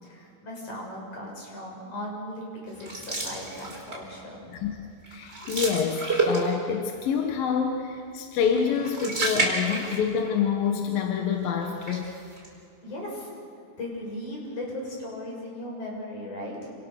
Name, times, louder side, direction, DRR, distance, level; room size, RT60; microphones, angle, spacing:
voice 1, 0.0-4.4 12.8-13.3 13.8-16.7, left 1 dB, 50° left, -2 dB, 7.9 m, -37 dB
sound 1, 2.8-4.1 4.5-4.8 5.0-6.8 8.5-10.3 10.7-10.8 11.6-12.5, right 2 dB, 15° right, 5.0 m, -30 dB
voice 2, 4.5-12.1, left 7 dB, 70° left, 2 dB, 3.1 m, -27 dB
29.5 x 26.5 x 6.6 m, 2.5 s
omnidirectional pair, 4.4 m